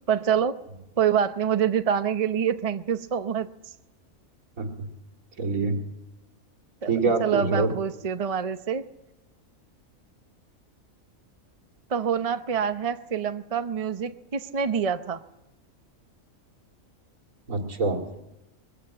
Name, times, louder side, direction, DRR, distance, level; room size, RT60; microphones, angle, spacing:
voice 1, 0.1-0.6 1.0-3.5 6.8-6.9 7.2-8.8 11.9-15.2, right 7 dB, 30° right, 9 dB, 0.7 m, -26 dB
voice 2, 4.6-4.9 5.4-5.8 6.9-7.7 17.5-18.0, right 3 dB, 80° right, 3 dB, 2.7 m, -25 dB
21.5 x 16.5 x 8.8 m, 0.94 s
omnidirectional pair, 1.4 m